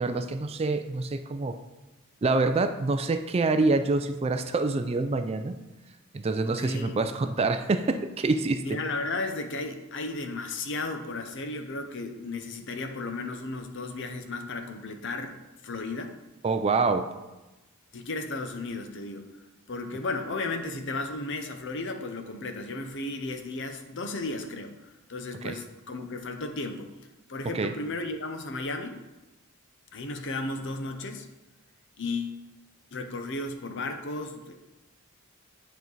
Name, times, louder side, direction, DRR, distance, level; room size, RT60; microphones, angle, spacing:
voice 1, 0.0-1.6 2.2-5.6 6.1-8.8 16.4-17.1 25.4-25.6 27.5-27.7, right 3 dB, 25° right, 8 dB, 0.3 m, -26 dB
voice 2, 6.4-7.0 8.6-15.4 15.6-16.1 17.9-19.2 19.7-26.9 27.3-29.0 29.9-31.3 32.0-32.4 32.9-34.5, left 2 dB, 55° left, 6 dB, 0.7 m, -34 dB
9.5 x 4.5 x 4.0 m, 1.1 s
head